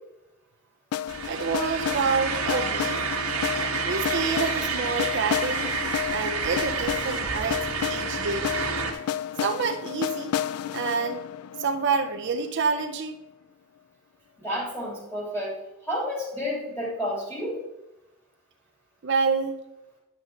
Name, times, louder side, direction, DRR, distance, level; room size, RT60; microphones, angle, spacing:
sound 1, 0.9-12.8, left 10 dB, 75° left, 0.3 m, -32 dB
sound 2, 1.1-8.9, right 5 dB, 80° right, 1.3 m, -29 dB
voice 1, 1.3-3.0 3.8-5.7 6.1-8.5 9.4-10.3 10.7-11.2 11.6-13.2 19.0-19.6, right 5 dB, 55° right, 5 dB, 0.5 m, -28 dB
voice 2, 14.4-15.6 15.8-17.6, equal, 10° left, -5 dB, 3.2 m, -30 dB
9.7 x 6.3 x 3.8 m, 0.96 s
head